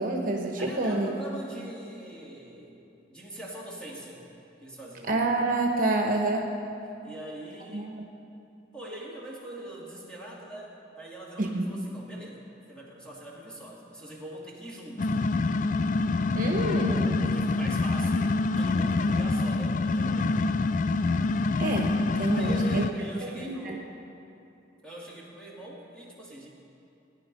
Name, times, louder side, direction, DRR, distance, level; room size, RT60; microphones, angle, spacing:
voice 1, 0.0-1.1 5.1-6.5 7.7-8.1 11.4-11.7 16.3-17.2 21.6-22.8 23.3-23.8, right 2 dB, 50° right, 2 dB, 1.2 m, -28 dB
voice 2, 0.6-2.8 3.1-4.2 4.6-5.2 7.0-7.9 8.7-15.1 17.2-20.4 22.3-23.9 24.8-26.5, right 1 dB, 5° left, -5 dB, 2.4 m, -42 dB
sound 1, 15.0-22.9, left 3 dB, 45° left, 0.4 m, -26 dB
17.5 x 10.0 x 5.4 m, 2.8 s
head